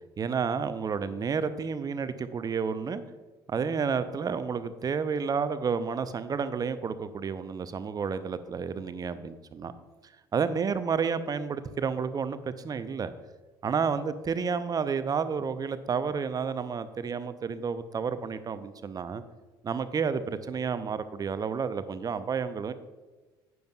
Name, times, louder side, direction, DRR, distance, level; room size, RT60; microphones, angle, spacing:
voice 1, 0.2-3.0 3.5-9.7 10.3-13.1 13.6-19.2 19.6-22.7, right 6 dB, 30° right, 12 dB, 0.7 m, -30 dB
11.5 x 9.3 x 2.3 m, 1.2 s
figure-of-eight pair, 55°, 12 cm